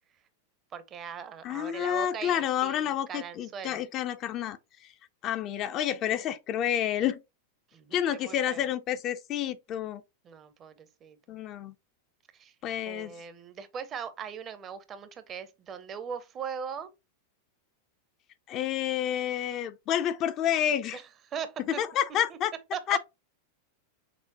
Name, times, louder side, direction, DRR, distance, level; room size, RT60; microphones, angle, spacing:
voice 1, 0.7-2.8 3.1-3.8 7.7-8.7 10.2-11.2 12.3-12.5 12.9-16.9 20.9-21.0 21.3-21.8 22.3-22.4 22.7-23.0, right 7 dB, 30° right, 0.6 m, -39 dB
voice 2, 1.4-4.6 5.2-7.2 7.9-10.0 11.3-11.7 12.6-13.1 18.5-21.0 21.7-22.5 22.9-23.0, left 10 dB, 35° left, 0.4 m, -29 dB
5.9 x 2.1 x 2.7 m
figure-of-eight pair, 90°, 0 cm